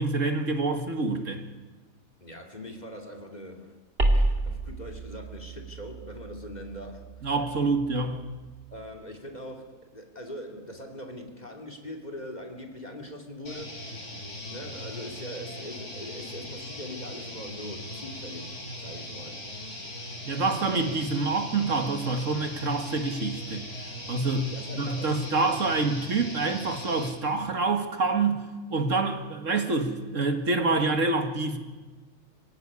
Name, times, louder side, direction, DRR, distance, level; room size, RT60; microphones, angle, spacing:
voice 1, 0.0-1.4 7.2-8.2 20.2-23.7 24.1-31.6, right 3 dB, 60° right, 6 dB, 2.1 m, -27 dB
voice 2, 2.2-3.8 4.1-7.3 8.7-13.8 14.5-20.2 24.3-25.6, left 1 dB, 30° left, 3 dB, 2.8 m, -42 dB
sound 1, 4.0-8.8, right 1 dB, 45° right, 2.8 m, -31 dB
sound 2, 13.5-27.2, left 1 dB, 50° left, 4.9 m, -39 dB
25.5 x 16.5 x 9.7 m, 1.3 s
omnidirectional pair, 1.5 m